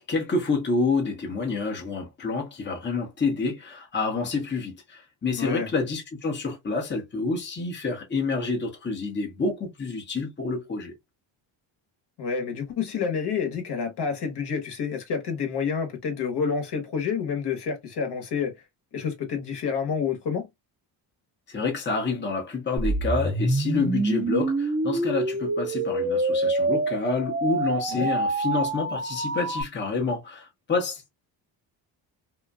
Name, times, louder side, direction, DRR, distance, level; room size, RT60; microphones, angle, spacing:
voice 1, 0.0-10.9 21.5-31.1, left 4 dB, 25° left, 0.9 m, -28 dB
voice 2, 5.3-5.7 12.2-18.5 18.9-20.4 27.9-28.1, left 6 dB, 55° left, 1.2 m, -28 dB
sound 1, 22.8-29.6, right 2 dB, 20° right, 0.7 m, -26 dB
2.7 x 2.4 x 2.2 m
supercardioid pair, 70°, 47 cm